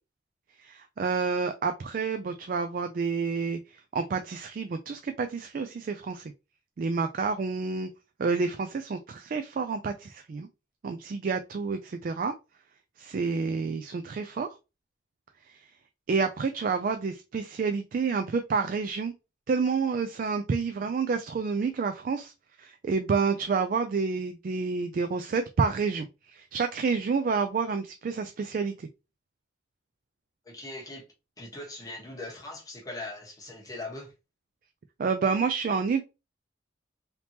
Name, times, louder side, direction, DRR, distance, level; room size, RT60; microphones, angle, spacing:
voice 1, 0.6-3.6 3.9-6.3 6.8-7.9 8.2-10.5 10.8-12.3 13.0-14.5 15.5-15.6 16.1-19.1 19.5-22.3 22.6-28.9 35.0-36.0, right 5 dB, 45° right, 0.3 m, -29 dB
voice 2, 30.4-31.0 31.4-34.1, left 2 dB, 20° left, 1.1 m, -40 dB
3.4 x 2.8 x 2.8 m
head